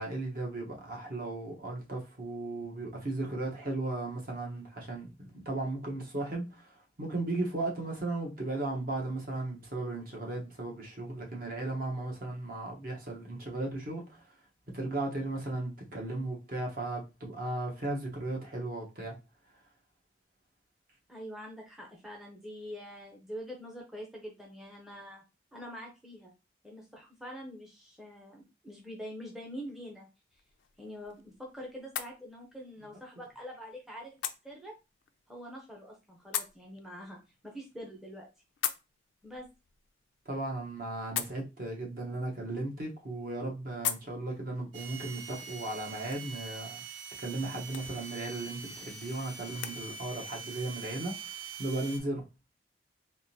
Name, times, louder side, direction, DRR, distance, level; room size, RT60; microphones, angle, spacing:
voice 1, 0.0-14.2 14.7-19.2 40.2-46.8 47.2-52.2, right 2 dB, 45° right, 0.9 m, -36 dB
voice 2, 21.1-25.2 25.5-26.3 26.6-30.1 30.8-34.2 34.4-34.7 35.3-37.2 37.4-38.3 39.2-39.5, equal, ahead, 0.6 m, -45 dB
sound 1, 30.3-49.8, left 11 dB, 75° left, 0.4 m, -43 dB
sound 2, 44.7-52.0, right 5 dB, 80° right, 0.7 m, -44 dB
3.6 x 2.5 x 2.7 m
head